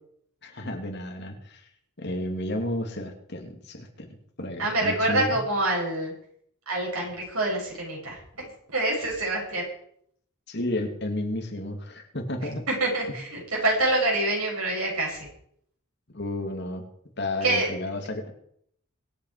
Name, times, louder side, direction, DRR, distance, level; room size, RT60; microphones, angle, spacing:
voice 1, 0.4-1.6 2.0-5.4 10.5-12.7 13.1-13.2 16.1-16.9 17.2-18.3, left 1 dB, 50° left, 3 dB, 2.5 m, -32 dB
voice 2, 4.6-6.1 6.7-8.2 8.7-9.6 12.7-15.3 17.4-17.7, right 2 dB, 85° right, -2 dB, 7.5 m, -26 dB
24.0 x 8.4 x 4.9 m, 0.67 s
head